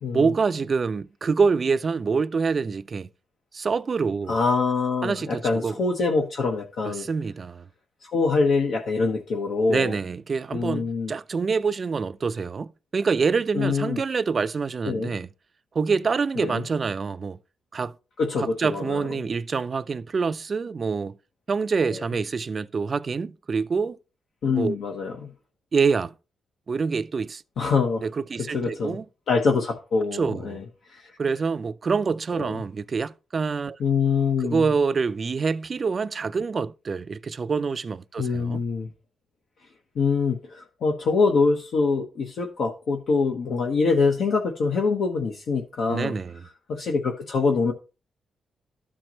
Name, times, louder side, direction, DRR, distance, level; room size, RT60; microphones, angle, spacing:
voice 1, 0.1-3.1 3.5-4.4 5.0-5.7 6.8-7.6 9.7-15.3 15.8-17.4 17.7-17.9 18.4-21.2 21.5-24.0 24.5-24.8 25.7-26.1 26.7-27.4 28.0-29.1 30.1-30.6 31.2-33.8 34.4-38.6 45.9-46.4, right 5 dB, 40° right, 0.4 m, -26 dB
voice 2, 4.3-7.1 8.0-10.0 10.5-11.1 13.5-14.0 14.8-15.1 16.4-16.6 18.2-19.1 21.9-22.0 24.4-25.3 27.6-28.1 28.5-29.0 29.3-31.2 32.4-32.6 33.8-34.7 38.2-38.9 39.9-46.1 46.7-47.7, left 4 dB, 70° left, 1.0 m, -24 dB
12.5 x 4.4 x 3.0 m
cardioid pair, 115°, 0 cm